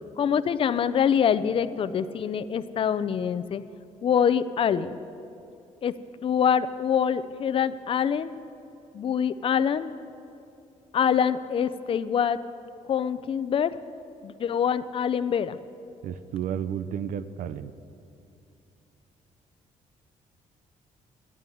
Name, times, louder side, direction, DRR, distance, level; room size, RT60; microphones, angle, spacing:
voice 1, 0.2-3.6 4.0-4.9 5.8-5.9 6.2-8.4 8.9-9.9 10.9-12.4 12.9-13.7 14.2-15.6, left 8 dB, 40° left, 14 dB, 0.5 m, -25 dB
voice 2, 16.0-17.7, right 9 dB, 90° right, 13 dB, 0.6 m, -32 dB
13.0 x 11.0 x 9.3 m, 2.7 s
cardioid pair, 145°, 13 cm